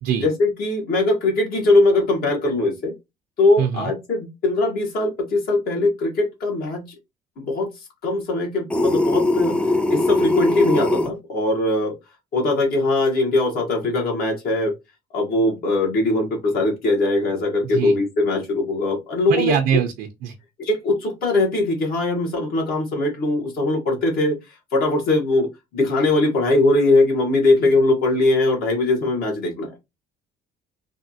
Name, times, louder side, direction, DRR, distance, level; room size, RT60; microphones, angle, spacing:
voice 1, 0.2-2.9 3.4-6.9 7.4-11.9 12.3-14.7 15.1-19.8 20.6-25.5 25.7-29.7, left 2 dB, 65° left, 1.4 m, -21 dB
voice 2, 3.6-3.9 17.6-17.9 19.3-20.3, right 9 dB, 90° right, 0.6 m, -23 dB
sound 1, 8.7-11.1, left 2 dB, 5° left, 0.4 m, -20 dB
3.4 x 2.4 x 2.7 m
cardioid pair, 110°, 17 cm